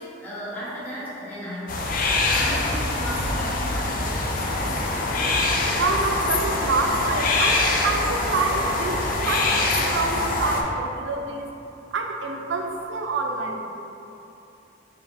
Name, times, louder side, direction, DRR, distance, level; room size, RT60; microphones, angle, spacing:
voice 1, 0.0-1.9 2.3-5.2, equal, 10° left, -9 dB, 1.1 m, -35 dB
sound 1, 1.7-10.6, left 2 dB, 50° left, 0.4 m, -24 dB
voice 2, 5.7-11.5 11.9-13.6, right 3 dB, 85° right, 2 dB, 0.5 m, -27 dB
4.7 x 3.0 x 3.4 m, 2.9 s
head